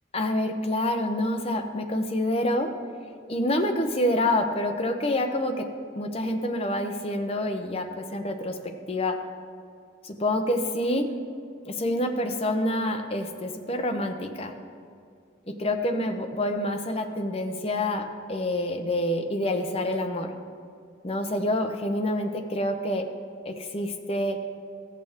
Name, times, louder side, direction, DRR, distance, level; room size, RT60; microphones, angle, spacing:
voice 1, 0.1-2.7 3.3-5.7 5.9-8.6 8.9-9.2 10.0-11.1 11.7-14.5 15.6-18.0 18.3-20.3 21.0-23.0 23.5-24.4, left 1 dB, 30° left, 4 dB, 0.8 m, -27 dB
15.5 x 6.8 x 3.6 m, 2.4 s
head